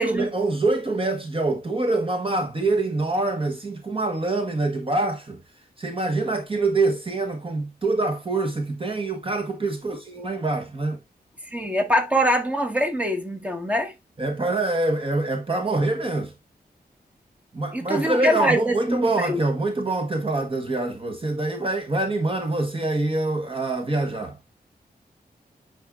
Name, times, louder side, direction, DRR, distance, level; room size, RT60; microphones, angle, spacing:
voice 1, 0.0-5.4 5.8-11.0 14.2-16.3 17.5-24.4, right 2 dB, 35° right, 1.3 m, -25 dB
voice 2, 11.5-13.9 17.7-19.4, equal, 10° right, 1.7 m, -23 dB
8.9 x 5.3 x 2.5 m
wide cardioid pair, 115°, 16 cm